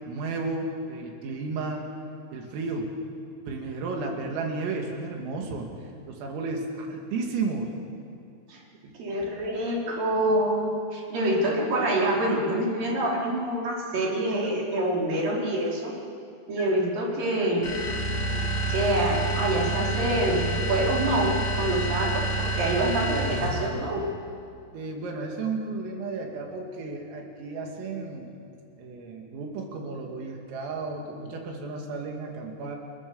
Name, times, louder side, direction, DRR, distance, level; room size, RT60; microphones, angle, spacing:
voice 1, 0.0-1.9 2.3-3.0 3.5-5.7 6.1-7.7 8.8-8.9 24.7-28.3 28.8-32.8, right 3 dB, 80° right, 1 dB, 5.2 m, -33 dB
voice 2, 9.0-15.9 16.5-17.7 18.7-24.0, right 1 dB, 45° right, -3 dB, 5.1 m, -26 dB
sound 1, 17.6-23.8, right 2 dB, 45° left, 4.4 m, -28 dB
28.5 x 19.0 x 7.2 m, 2.4 s
omnidirectional pair, 6.0 m